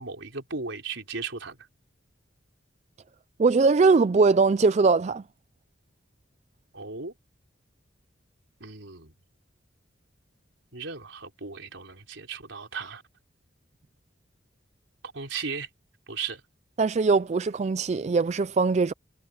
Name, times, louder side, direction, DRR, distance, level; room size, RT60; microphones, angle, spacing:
voice 1, 0.0-1.6 6.7-7.1 8.6-9.1 10.7-13.0 15.1-15.7 16.1-16.4, right 5 dB, 75° right, 4.1 m, -36 dB
voice 2, 3.4-5.2 16.8-18.9, right 4 dB, 35° right, 0.3 m, -21 dB
head